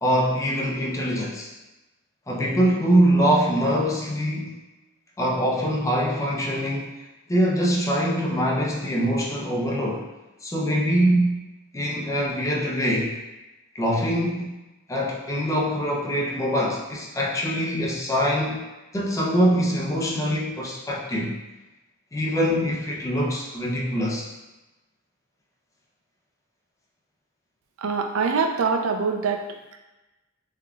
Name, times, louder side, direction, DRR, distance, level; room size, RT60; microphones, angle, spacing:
voice 1, 0.0-1.5 2.3-4.5 5.2-7.0 7.3-10.1 10.4-11.4 11.7-13.2 13.7-14.5 14.9-18.7 18.9-21.4 22.1-24.3, equal, 15° left, -3 dB, 0.5 m, -23 dB
voice 2, 27.8-29.4, right 5 dB, 75° right, 4 dB, 0.4 m, -24 dB
3.5 x 3.4 x 2.3 m, 1.1 s
head